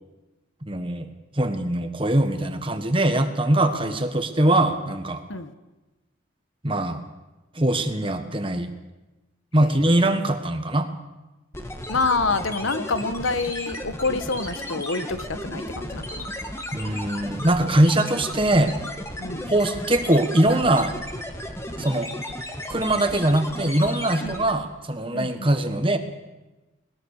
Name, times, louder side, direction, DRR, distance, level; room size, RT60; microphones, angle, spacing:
voice 1, 0.6-1.1 1.3-5.2 6.6-7.0 7.5-8.7 9.5-10.9 16.7-18.7 19.5-20.9 21.8-22.1 22.7-26.0, right 1 dB, 25° right, 7 dB, 1.5 m, -22 dB
voice 2, 9.6-10.0 11.9-16.3 19.2-19.5 24.2-24.4 25.1-25.5, left 3 dB, 80° left, 10 dB, 1.4 m, -27 dB
sound 1, 11.5-24.7, left 1 dB, 15° left, 1.6 m, -34 dB
20.5 x 20.0 x 6.7 m, 1.1 s
head